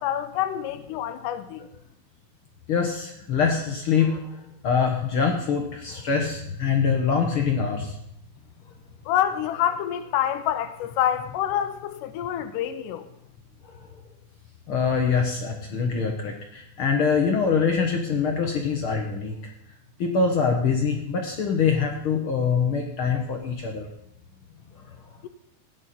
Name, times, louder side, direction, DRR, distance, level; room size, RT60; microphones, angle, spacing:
voice 1, 0.0-1.6 9.1-13.1, left 11 dB, 85° left, 2.3 m, -27 dB
voice 2, 2.7-4.3 4.6-8.0 13.6-13.7 14.7-19.5 20.0-23.9 24.9-25.0, left 5 dB, 55° left, 1.6 m, -24 dB
16.0 x 9.2 x 4.3 m
omnidirectional pair, 3.7 m